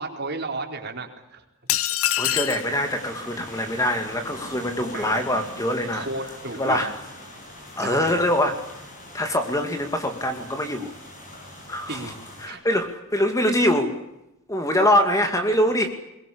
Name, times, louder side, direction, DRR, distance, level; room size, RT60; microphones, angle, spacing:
voice 1, 0.0-1.4 4.9-5.2 5.9-6.8 7.8-8.2 11.9-12.1 12.5-12.6, right 2 dB, 50° right, 3 dB, 4.4 m, -33 dB
sound 1, 1.7-2.7, left 12 dB, 70° left, 0.8 m, -24 dB
voice 2, 2.2-6.1 6.6-6.9 7.8-8.5 9.1-10.9 11.7-12.1 12.4-14.0 14.5-15.9, left 1 dB, 15° left, 6 dB, 2.4 m, -23 dB
sound 2, 2.3-12.5, left 1 dB, 35° left, 7.8 m, -42 dB
22.5 x 22.0 x 8.7 m, 0.88 s
head